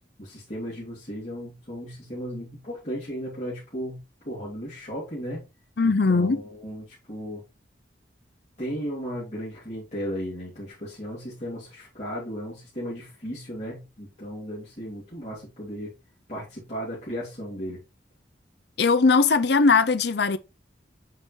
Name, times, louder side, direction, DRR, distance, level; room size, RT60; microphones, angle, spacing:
voice 1, 0.2-5.4 5.8-7.4 8.6-15.9 16.3-17.8, equal, 40° left, 2.9 m, -35 dB
voice 2, 5.8-6.4 18.8-20.4, left 4 dB, 60° left, 0.6 m, -20 dB
7.8 x 5.4 x 3.2 m
head